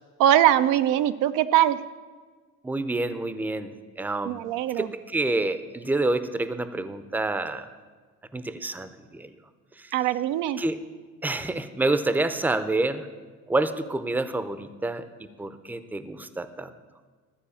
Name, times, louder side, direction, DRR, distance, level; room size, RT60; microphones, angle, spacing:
voice 1, 0.2-1.9 4.2-4.9 9.9-10.6, right 12 dB, 80° right, 11 dB, 0.6 m, -22 dB
voice 2, 2.6-4.4 4.8-7.7 8.3-9.3 9.8-9.9 10.6-10.8 11.2-13.1 13.5-16.7, right 2 dB, 5° right, 12 dB, 0.6 m, -28 dB
13.5 x 4.7 x 8.5 m, 1.5 s
cardioid pair, 100°, 31 cm